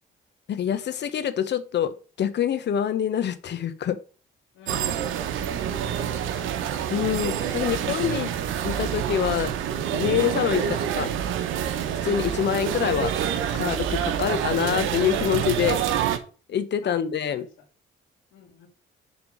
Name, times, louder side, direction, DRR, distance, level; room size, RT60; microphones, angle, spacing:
voice 1, 0.5-4.0 6.9-8.3 8.6-9.5 9.9-11.1 12.0-13.1 13.5-15.8 16.5-17.4, left 9 dB, 60° left, 12 dB, 1.0 m, -25 dB
voice 2, 4.5-6.5 7.6-8.4 10.6-10.8 16.8-17.5 18.3-18.7, left 7 dB, 85° left, 1 dB, 2.2 m, -49 dB
sound 1, 4.7-16.2, right 9 dB, 85° right, 0.9 m, -27 dB
7.1 x 3.6 x 6.3 m, 0.37 s
cardioid pair, 90°, 20 cm